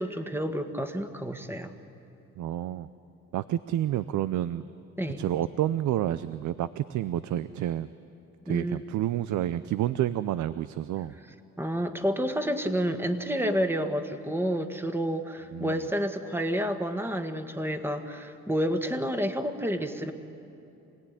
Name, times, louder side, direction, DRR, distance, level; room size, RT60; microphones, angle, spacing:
voice 1, 0.0-1.7 5.0-5.3 8.5-8.8 11.6-20.1, equal, 10° right, 7 dB, 1.8 m, -29 dB
voice 2, 2.4-2.9 3.3-4.6 5.2-7.9 8.5-11.1 15.5-15.8, right 12 dB, 75° right, 15 dB, 0.6 m, -29 dB
26.0 x 17.5 x 10.0 m, 2.9 s
cardioid pair, 90°, 30 cm